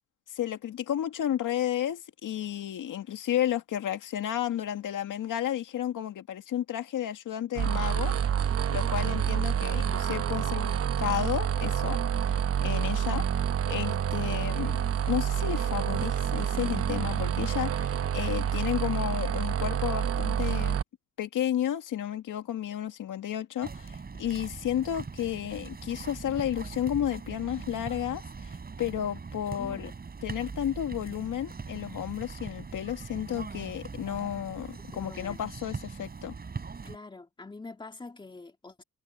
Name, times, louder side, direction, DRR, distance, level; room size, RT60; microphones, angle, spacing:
voice 1, 0.3-8.1 8.7-10.7 11.0-12.4 12.6-20.8 21.2-29.9 30.2-36.3, left 11 dB, 65° left, 2.1 m, -32 dB
sound 1, 7.6-20.8, right 9 dB, 45° right, 0.9 m, -28 dB
sound 2, 23.6-37.0, right 4 dB, 25° right, 6.0 m, -41 dB
voice 2, 29.6-29.9 34.9-35.4 36.8-38.8, left 3 dB, 15° left, 2.3 m, -45 dB
cardioid pair, 135°, 34 cm